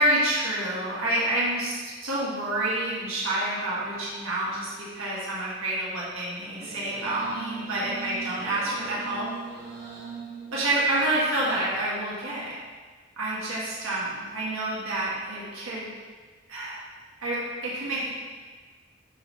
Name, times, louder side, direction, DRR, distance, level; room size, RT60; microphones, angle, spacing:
voice 1, 0.0-9.3 10.5-12.5 13.2-15.9 16.5-16.8 17.2-18.1, right 1 dB, 90° right, -7 dB, 1.6 m, -28 dB
sound 1, 6.4-11.6, right 4 dB, 35° right, 1.7 m, -40 dB
10.0 x 3.7 x 3.1 m, 1.5 s
head